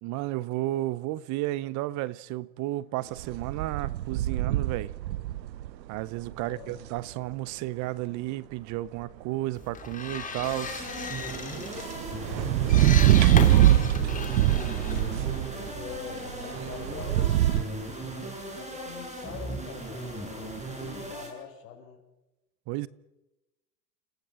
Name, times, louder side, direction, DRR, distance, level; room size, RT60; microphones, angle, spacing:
voice 1, 0.0-4.9 5.9-10.9 22.7-22.9, right 17 dB, 35° right, 0.8 m, -32 dB
sound 1, 3.2-5.7 6.3-6.4 11.1-17.6, right 14 dB, 90° right, 0.9 m, -23 dB
voice 2, 6.4-6.8 12.1-12.7 13.2-14.3 15.3-17.7 18.6-22.0, left 8 dB, 75° left, 6.1 m, -44 dB
sound 2, 9.6-16.0, left 5 dB, 15° left, 3.1 m, -37 dB
sound 3, 10.4-21.3, right 1 dB, 15° right, 7.8 m, -37 dB
29.5 x 16.5 x 7.7 m
supercardioid pair, 125°, 50 cm